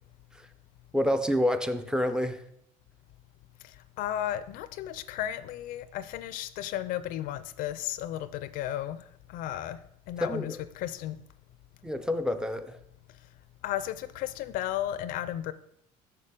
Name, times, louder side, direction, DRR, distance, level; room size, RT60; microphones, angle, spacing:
voice 1, 0.9-2.4 10.2-10.6 11.8-12.8, left 1 dB, 5° right, 0.4 m, -28 dB
voice 2, 3.6-9.8 10.1-11.2 13.6-15.5, left 12 dB, 60° left, 0.4 m, -34 dB
6.7 x 6.3 x 3.7 m
cardioid pair, 130°, 16 cm